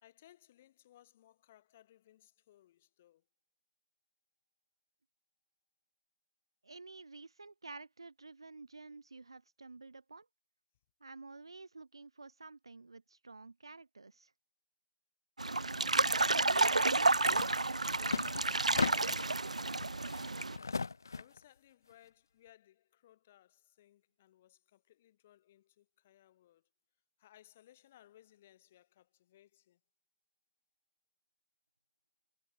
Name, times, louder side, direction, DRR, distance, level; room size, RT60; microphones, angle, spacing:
voice 1, 0.0-3.3 18.7-20.2 21.1-26.7 27.2-29.8, left 13 dB, 10° left, 3.5 m, -63 dB
voice 2, 6.6-10.3 11.0-14.3, right 3 dB, 45° right, 2.7 m, -51 dB
sound 1, 15.4-20.6, right 3 dB, 75° right, 0.6 m, -30 dB
sound 2, 17.3-17.5 17.8-19.3 19.8-21.4, left 4 dB, 30° left, 0.7 m, -37 dB
figure-of-eight pair, 175°, 4 cm